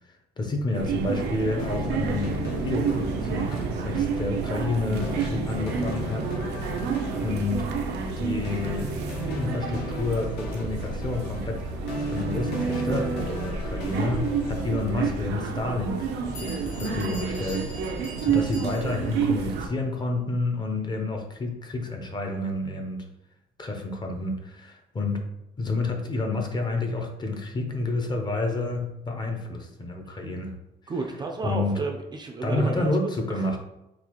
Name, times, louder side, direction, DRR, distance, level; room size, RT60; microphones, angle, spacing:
voice 1, 0.4-3.6 3.8-6.3 7.2-7.6 8.2-8.9 9.3-11.6 12.1-16.0 16.4-23.0 23.6-25.2 25.6-30.5 31.4-31.8 32.4-33.6, left 2 dB, 25° left, 3 dB, 0.6 m, -29 dB
sound 1, 0.7-19.7, right 6 dB, 80° right, 0.5 m, -30 dB
sound 2, 1.6-15.3, left 1 dB, 75° left, 1.0 m, -35 dB
Bell, 16.0-16.1 16.3-19.1, equal, 50° left, 1.4 m, -43 dB
voice 2, 30.9-32.9, right 3 dB, 25° right, 2 dB, 0.4 m, -31 dB
4.0 x 2.4 x 2.9 m, 0.90 s
cardioid pair, 110°, 17 cm